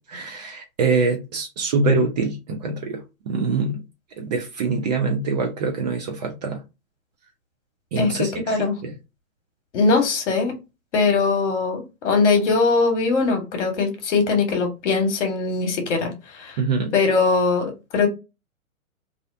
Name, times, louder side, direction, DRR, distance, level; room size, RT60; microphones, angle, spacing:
voice 1, 0.1-3.0 3.3-3.8 4.2-6.6 7.9-8.9 16.6-16.9, right 4 dB, 35° right, 0.4 m, -24 dB
voice 2, 8.0-8.7 9.7-10.6 10.9-16.6 16.9-18.1, left 4 dB, 55° left, 1.0 m, -21 dB
2.4 x 2.1 x 2.5 m
hypercardioid pair, 120°, 42 cm